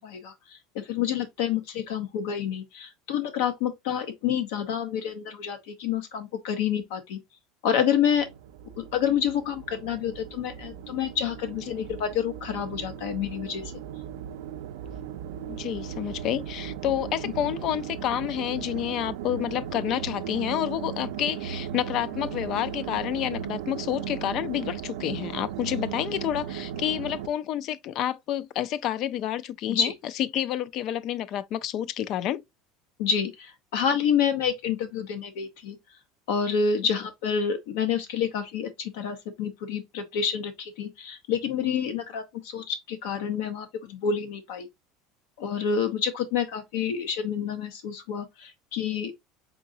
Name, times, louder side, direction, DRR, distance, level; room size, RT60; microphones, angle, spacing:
voice 1, 0.0-7.2 7.6-8.3 8.8-13.7 29.7-29.9 33.0-35.8 36.3-44.7 45.4-49.1, left 7 dB, 80° left, 0.7 m, -28 dB
sound 1, 8.1-27.3, right 9 dB, 90° right, 0.4 m, -37 dB
voice 2, 15.5-29.9 30.2-32.4, left 11 dB, 50° left, 0.3 m, -29 dB
3.9 x 3.7 x 2.6 m
supercardioid pair, 140°, 0 cm